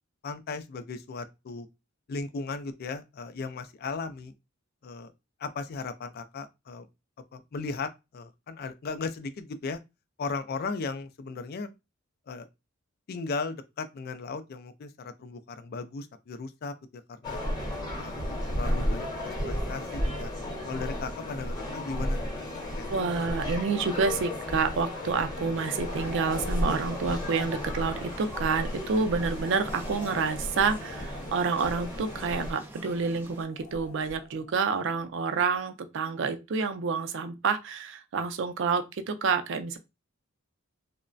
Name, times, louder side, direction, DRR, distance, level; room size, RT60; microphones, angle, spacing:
voice 1, 0.2-1.7 2.1-4.3 4.8-5.1 5.4-6.9 7.3-9.8 10.2-11.7 12.3-12.5 13.1-17.4 18.0-20.3 20.7-22.4 22.8-23.0, left 4 dB, 50° left, 0.3 m, -37 dB
sound 1, 17.2-32.5, left 1 dB, 20° left, 0.9 m, -33 dB
voice 2, 22.9-39.8, right 5 dB, 65° right, 0.4 m, -28 dB
sound 2, 25.5-33.4, equal, 10° right, 0.5 m, -47 dB
sound 3, 25.7-27.1 29.3-30.8 33.5-34.6, left 3 dB, 70° left, 0.7 m, -44 dB
3.1 x 2.0 x 2.5 m
head